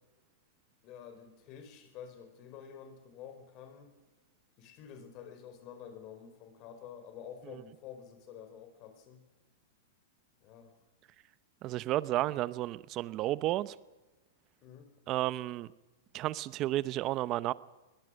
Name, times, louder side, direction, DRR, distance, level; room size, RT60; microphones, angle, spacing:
voice 1, 0.8-3.9 4.6-9.2 10.4-10.7 14.6-14.9, left 8 dB, 40° left, 4.5 m, -49 dB
voice 2, 11.6-13.7 15.1-15.7 16.1-17.5, right 15 dB, 35° right, 0.8 m, -32 dB
22.0 x 19.5 x 6.5 m
hypercardioid pair, 140°, 0 cm